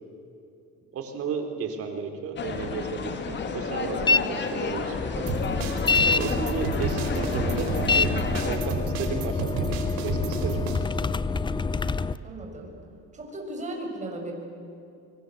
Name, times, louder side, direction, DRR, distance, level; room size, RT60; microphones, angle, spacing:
voice 1, 0.9-5.3 6.1-8.1 8.4-10.8, right 5 dB, 50° right, 5 dB, 4.1 m, -33 dB
sound 1, 2.4-8.6, left 5 dB, 35° left, 3.1 m, -32 dB
sound 2, 4.0-4.2 4.6-12.1, left 4 dB, 15° left, 0.8 m, -27 dB
sound 3, 5.3-10.8, right 5 dB, 75° right, 4.2 m, -31 dB
voice 2, 12.2-12.8 13.1-14.3, right 1 dB, 25° right, 1 dB, 7.4 m, -36 dB
25.0 x 24.5 x 8.1 m, 2.7 s
supercardioid pair, 110°, 30 cm